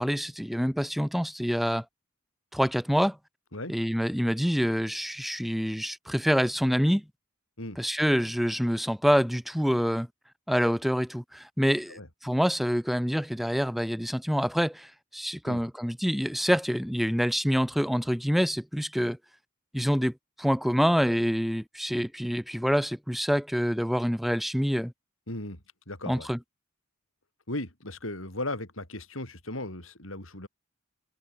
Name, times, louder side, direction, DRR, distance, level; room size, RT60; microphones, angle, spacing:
voice 1, 0.0-1.8 2.5-3.2 3.7-7.0 7.8-10.1 10.5-19.2 19.7-24.9 26.1-26.4, equal, ahead, 1.9 m, -26 dB
voice 2, 25.3-25.6 25.9-26.3 27.5-30.5, left 1 dB, 70° left, 7.9 m, -36 dB
head